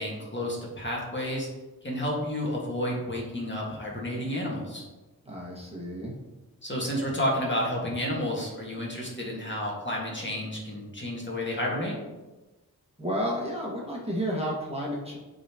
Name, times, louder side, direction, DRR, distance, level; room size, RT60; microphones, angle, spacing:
voice 1, 0.0-1.5 1.8-4.8 6.6-12.0, left 1 dB, 30° left, -3 dB, 1.8 m, -31 dB
voice 2, 5.3-6.2 13.0-15.2, equal, 15° right, -4 dB, 1.7 m, -31 dB
8.2 x 4.0 x 3.0 m, 1.1 s
cardioid pair, 55°, 36 cm